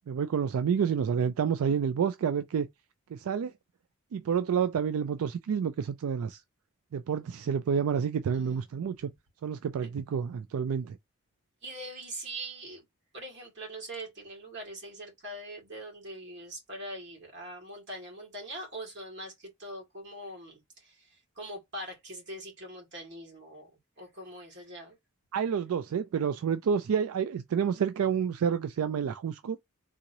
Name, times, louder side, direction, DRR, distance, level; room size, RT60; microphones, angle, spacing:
voice 1, 0.1-2.7 3.1-3.5 4.1-6.4 6.9-9.1 9.4-11.0 25.3-29.6, right 7 dB, 85° right, 0.3 m, -29 dB
voice 2, 8.3-8.7 11.6-12.8 13.1-23.7 24.0-25.0, right 1 dB, 55° right, 1.9 m, -42 dB
3.7 x 3.0 x 2.6 m
head